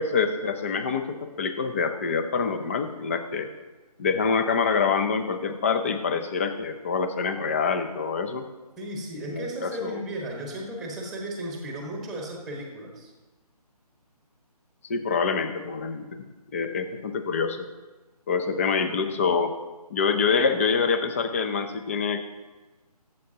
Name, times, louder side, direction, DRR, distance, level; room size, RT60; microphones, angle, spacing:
voice 1, 0.0-3.5 4.0-8.4 9.3-10.0 14.9-16.2 16.5-17.7 18.3-19.5 19.9-22.2, left 5 dB, 20° left, 8 dB, 0.6 m, -26 dB
voice 2, 8.8-13.1, right 1 dB, ahead, 0 dB, 1.3 m, -35 dB
17.0 x 8.0 x 2.8 m, 1.2 s
figure-of-eight pair, 155°, 20 cm